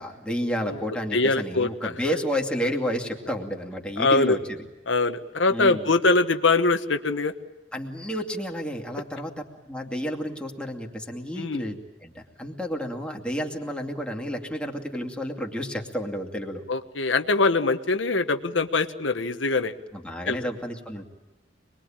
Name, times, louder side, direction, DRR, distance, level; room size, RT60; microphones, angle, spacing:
voice 1, 0.0-4.6 5.5-5.9 7.7-9.3 9.6-16.6 19.9-21.0, equal, 5° left, 0 dB, 2.6 m, -31 dB
voice 2, 1.1-1.9 4.0-4.4 4.9-7.3 11.4-11.6 16.7-19.7 20.3-20.4, left 3 dB, 90° left, 8 dB, 1.2 m, -23 dB
25.5 x 21.5 x 8.9 m, 1.1 s
head